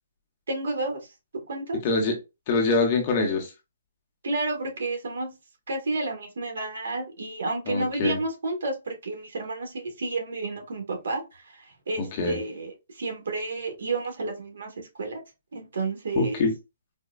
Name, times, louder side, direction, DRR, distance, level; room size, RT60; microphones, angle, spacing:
voice 1, 0.5-1.0 1.5-1.8 4.2-5.3 5.7-15.2 15.5-16.5, right 2 dB, 75° right, 1.4 m, -31 dB
voice 2, 1.8-2.1 2.5-3.5 7.7-8.2 12.0-12.4 16.2-16.5, left 3 dB, 35° left, 1.1 m, -24 dB
4.3 x 2.3 x 2.3 m
hypercardioid pair, 160°, 0 cm